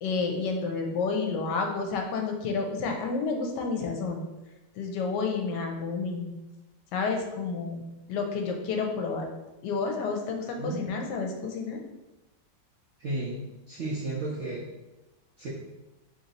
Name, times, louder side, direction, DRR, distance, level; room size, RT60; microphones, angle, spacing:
voice 1, 0.0-4.2 4.7-6.3 6.9-7.8 8.1-9.3 9.6-11.8, left 4 dB, 75° left, 3 dB, 1.2 m, -30 dB
voice 2, 13.0-14.6 15.4-15.5, right 2 dB, 70° right, -6 dB, 0.6 m, -33 dB
3.1 x 2.6 x 3.9 m, 1.0 s
omnidirectional pair, 1.9 m